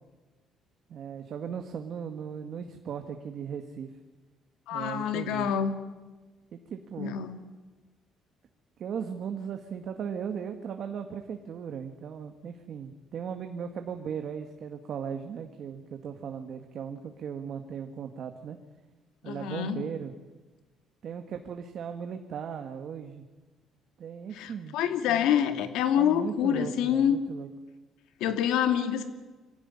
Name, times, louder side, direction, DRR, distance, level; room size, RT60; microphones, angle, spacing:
voice 1, 0.9-3.9 4.7-5.5 6.5-7.2 8.8-18.6 19.2-20.1 21.0-23.2 24.0-24.8 25.1-25.3 26.0-27.5, right 7 dB, 50° right, 6 dB, 1.8 m, -37 dB
voice 2, 4.7-5.7 7.0-7.4 19.3-19.8 24.4-27.2 28.2-29.1, left 9 dB, 90° left, 7 dB, 2.7 m, -26 dB
25.0 x 16.5 x 9.9 m, 1.2 s
cardioid pair, 155°, 0 cm